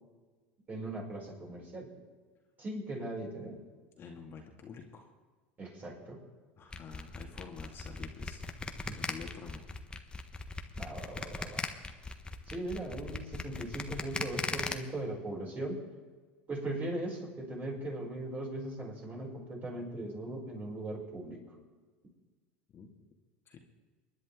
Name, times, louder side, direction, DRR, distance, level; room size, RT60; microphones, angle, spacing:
voice 1, 0.7-1.9 2.6-3.6 5.6-6.2 8.9-9.0 10.7-11.7 12.5-15.8 16.5-21.5, right 1 dB, 30° right, -3 dB, 6.4 m, -39 dB
voice 2, 4.0-5.1 6.6-9.6 22.7-22.9 23.5-23.6, left 5 dB, 40° left, 1 dB, 2.2 m, -48 dB
sound 1, 6.7-14.7, left 3 dB, 15° left, 1.3 m, -38 dB
29.0 x 10.5 x 3.7 m, 1.4 s
hypercardioid pair, 90°, 6 cm